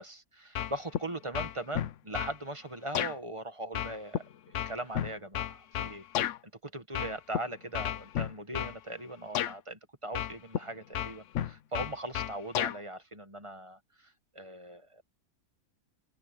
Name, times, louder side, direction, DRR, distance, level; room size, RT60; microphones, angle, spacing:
voice 1, 0.0-6.0 6.6-15.0, right 1 dB, 20° right, 1.4 m, -40 dB
sound 1, 0.6-1.1 1.3-2.4 3.0-3.1 3.8-6.4 6.9-7.4 7.7-8.8 9.4-9.5 10.2-10.6 10.9-12.8, left 11 dB, 65° left, 1.0 m, -32 dB
omnidirectional pair, 1.5 m